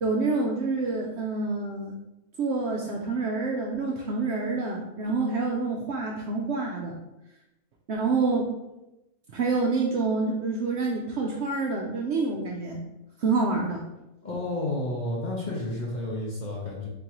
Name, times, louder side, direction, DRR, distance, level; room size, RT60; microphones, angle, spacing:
voice 1, 0.0-2.0 2.4-7.0 7.9-8.5 9.3-12.8 13.2-13.9, right 3 dB, 65° right, 0 dB, 0.7 m, -27 dB
voice 2, 14.2-16.9, left 1 dB, 40° left, -4 dB, 0.7 m, -31 dB
3.8 x 3.7 x 3.0 m, 0.93 s
omnidirectional pair, 1.5 m